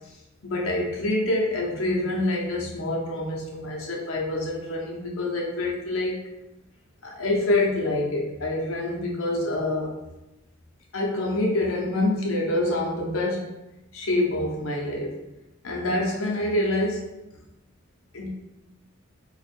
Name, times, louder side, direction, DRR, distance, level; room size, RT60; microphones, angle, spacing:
voice 1, 0.4-6.2 7.0-10.0 10.9-13.6 13.9-15.2 15.6-17.1 18.1-18.3, left 1 dB, 85° left, -2 dB, 0.8 m, -26 dB
2.6 x 2.4 x 4.2 m, 0.95 s
head